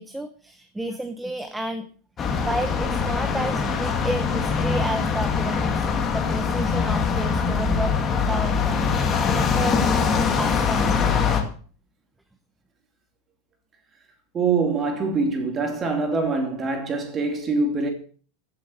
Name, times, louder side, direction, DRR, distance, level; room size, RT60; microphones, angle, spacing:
voice 1, 0.0-1.9 2.4-5.9 6.1-11.1, right 1 dB, 5° right, 0.9 m, -32 dB
sound 1, 2.2-11.4, left 5 dB, 20° left, 2.1 m, -23 dB
voice 2, 14.3-17.9, right 4 dB, 20° right, 2.8 m, -24 dB
15.5 x 7.7 x 6.3 m
supercardioid pair, 165°, 0 cm